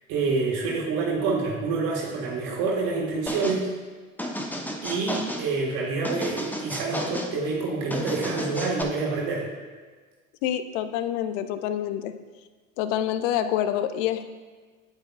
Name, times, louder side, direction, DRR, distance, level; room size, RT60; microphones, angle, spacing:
voice 1, 0.1-3.7 4.8-9.4, right 4 dB, 60° right, -3 dB, 1.7 m, -27 dB
sound 1, 3.3-3.6 4.2-5.5 6.0-7.3 7.9-8.8, equal, 5° left, 0.8 m, -32 dB
voice 2, 10.4-12.2 12.8-14.3, left 11 dB, 65° left, 11 dB, 0.6 m, -27 dB
8.9 x 8.1 x 2.4 m, 1.4 s
hypercardioid pair, 65°, 41 cm